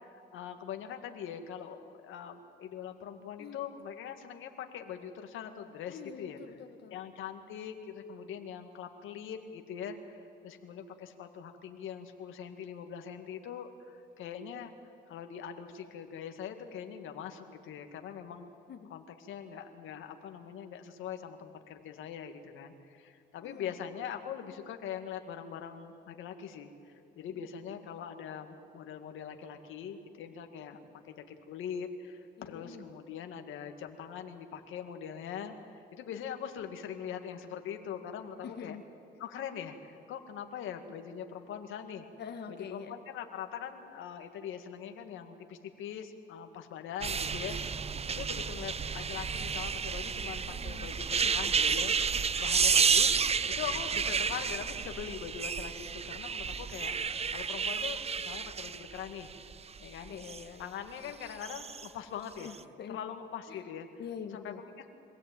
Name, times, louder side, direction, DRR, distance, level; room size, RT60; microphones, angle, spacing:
voice 1, 0.3-6.4 6.9-14.7 15.1-18.5 18.9-30.8 31.0-38.8 39.2-42.1 42.5-47.6 48.1-51.9 52.4-53.2 53.5-59.3 59.8-60.2 60.6-62.5 62.9-63.9 64.3-64.9, left 8 dB, 85° left, 6 dB, 1.9 m, -42 dB
voice 2, 5.9-7.0 18.7-18.9 23.4-23.7 27.3-27.5 32.4-32.9 38.4-38.8 42.2-42.9 50.5-51.8 60.1-60.7 62.4-63.0 63.5-63.6 64.0-64.6, left 7 dB, 55° left, 4 dB, 1.6 m, -45 dB
sound 1, 47.0-60.4 61.3-61.9 62.4-62.6, right 6 dB, 30° right, 0.7 m, -31 dB
25.0 x 16.5 x 9.1 m, 2.6 s
cardioid pair, 90°, 20 cm